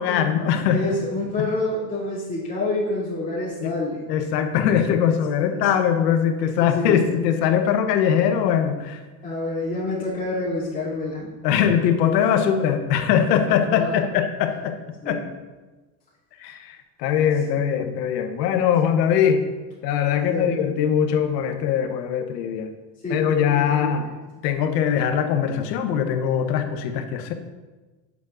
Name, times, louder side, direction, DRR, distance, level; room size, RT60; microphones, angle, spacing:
voice 1, 0.0-1.0 1.4-1.5 3.6-3.7 4.1-9.0 11.4-14.8 15.0-15.2 16.4-19.4 19.8-22.7 23.1-24.0 24.4-27.3, left 8 dB, 85° left, 7 dB, 1.0 m, -21 dB
voice 2, 0.7-4.0 5.0-5.2 6.6-7.0 9.2-11.3 13.7-14.0 15.0-15.2 20.2-20.5 23.0-23.2 23.5-23.9, left 2 dB, 15° left, -10 dB, 2.6 m, -27 dB
9.5 x 7.1 x 2.5 m, 1.2 s
supercardioid pair, 110°, 48 cm